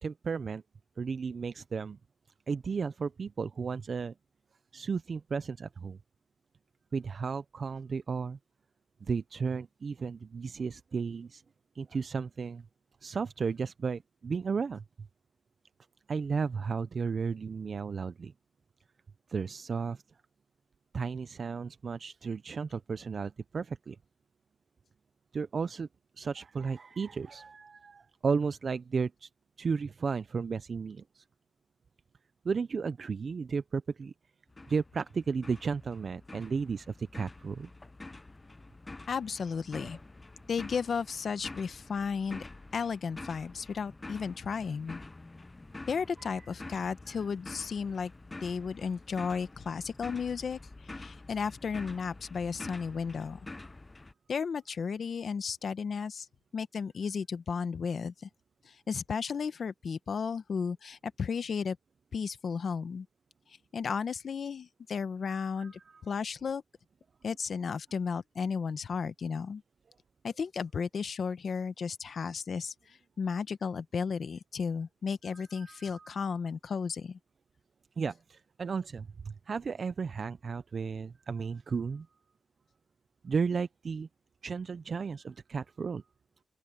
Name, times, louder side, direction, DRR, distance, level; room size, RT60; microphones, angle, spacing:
voice 1, 0.0-0.6 1.0-2.0 2.5-4.1 4.7-6.0 6.9-8.4 9.0-11.4 11.7-12.7 13.0-15.1 16.1-18.3 19.3-20.0 20.9-24.0 25.3-25.9 26.2-29.3 29.6-31.2 32.4-34.1 34.7-37.7 39.8-39.9 45.7-45.9 46.2-46.5 46.7-46.9 47.1-47.2 65.3-66.0 75.3-76.2 78.0-82.1 83.2-84.1 84.4-86.0, right 5 dB, 50° right, 0.5 m, -34 dB
sound 1, 34.5-54.1, left 2 dB, 25° left, 0.5 m, -47 dB
voice 2, 39.1-40.0 40.5-42.4 42.7-45.0 45.9-48.1 48.4-53.4 54.3-56.3 56.5-58.3 58.6-61.8 62.1-63.1 63.7-66.6 67.2-69.6 70.2-77.2, left 6 dB, 60° left, 1.1 m, -34 dB
open air
cardioid pair, 95°, 0 cm